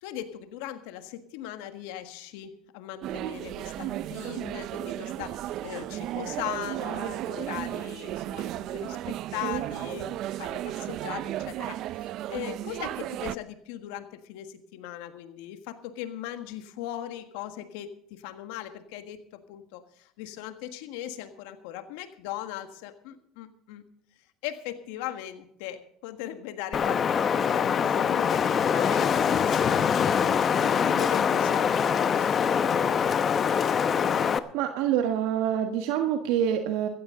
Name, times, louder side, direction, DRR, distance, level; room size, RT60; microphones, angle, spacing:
voice 1, 0.0-23.8 24.4-28.4 28.7-30.2 30.6-33.0, left 12 dB, 80° left, 9 dB, 1.5 m, -39 dB
sound 1, 3.0-13.4, right 13 dB, 60° right, 0.5 m, -34 dB
Wind, 26.7-34.4, left 7 dB, 40° left, 0.9 m, -24 dB
voice 2, 34.5-36.9, right 9 dB, 80° right, 5 dB, 1.4 m, -26 dB
16.0 x 14.5 x 3.8 m, 0.68 s
supercardioid pair, 95°, 0 cm